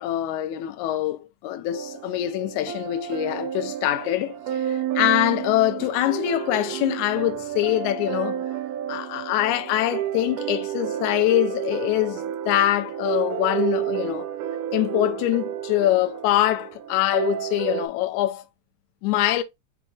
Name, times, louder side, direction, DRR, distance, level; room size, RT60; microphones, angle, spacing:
voice 1, 0.0-8.4 8.9-14.3 14.7-18.4 19.0-19.4, left 15 dB, 80° left, 1.9 m, -24 dB
sound 1, 1.7-17.9, right 11 dB, 90° right, 2.1 m, -30 dB
4.7 x 4.1 x 2.2 m
omnidirectional pair, 3.6 m